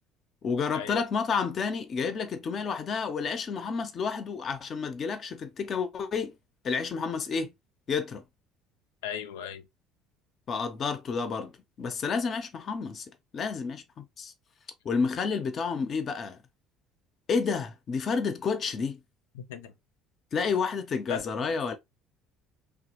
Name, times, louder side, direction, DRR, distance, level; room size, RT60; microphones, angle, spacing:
voice 1, 0.4-6.3 6.6-7.5 7.9-8.2 10.5-11.5 11.8-13.1 13.3-14.3 14.8-16.4 17.3-19.0 20.3-21.7, left 5 dB, 45° left, 0.7 m, -30 dB
voice 2, 9.0-9.7 19.3-19.7 21.1-21.2, left 9 dB, 80° left, 0.4 m, -36 dB
3.0 x 2.2 x 2.9 m
hypercardioid pair, 65°, 0 cm